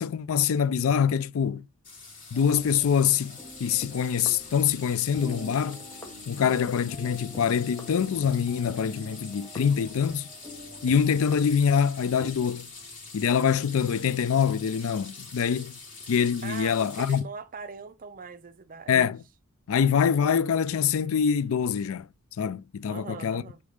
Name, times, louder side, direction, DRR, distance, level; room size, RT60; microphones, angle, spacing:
voice 1, 0.0-1.6 2.3-5.8 6.3-10.3 10.8-12.7 13.1-15.7 16.1-17.2 18.9-19.2 19.7-22.1 22.4-23.4, left 7 dB, 65° left, 0.4 m, -25 dB
sound 1, 1.8-17.2, left 4 dB, 35° left, 4.1 m, -45 dB
sound 2, 2.3-12.3, left 1 dB, 15° left, 1.6 m, -46 dB
voice 2, 16.4-19.0 22.9-23.6, right 5 dB, 40° right, 0.5 m, -41 dB
5.3 x 4.7 x 4.8 m
head